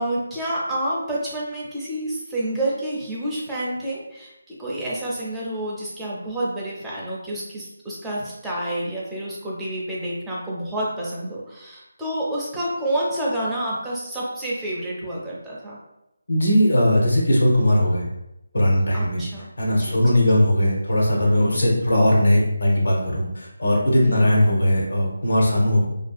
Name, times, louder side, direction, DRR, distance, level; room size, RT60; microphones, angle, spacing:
voice 1, 0.0-15.8 18.9-20.0 24.0-24.3, right 1 dB, 5° right, -7 dB, 0.4 m, -29 dB
voice 2, 16.3-18.1 18.5-19.2 19.6-25.9, left 1 dB, 75° left, -3 dB, 0.7 m, -19 dB
2.5 x 2.3 x 2.3 m, 0.88 s
figure-of-eight pair, 165°, 0 cm